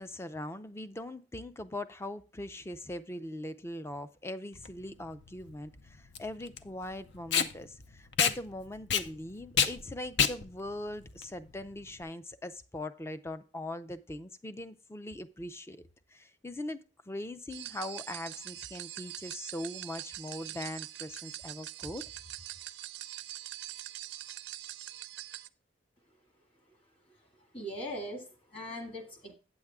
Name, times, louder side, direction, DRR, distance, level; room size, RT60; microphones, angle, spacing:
voice 1, 0.0-15.8 16.1-22.0, left 1 dB, 15° left, 0.4 m, -41 dB
Packing tape duct tape, 4.6-12.0, left 7 dB, 65° left, 0.6 m, -31 dB
sound 1, 17.5-25.5, right 14 dB, 65° right, 0.4 m, -43 dB
voice 2, 27.2-29.3, equal, 30° left, 2.1 m, -41 dB
8.7 x 7.8 x 3.5 m
head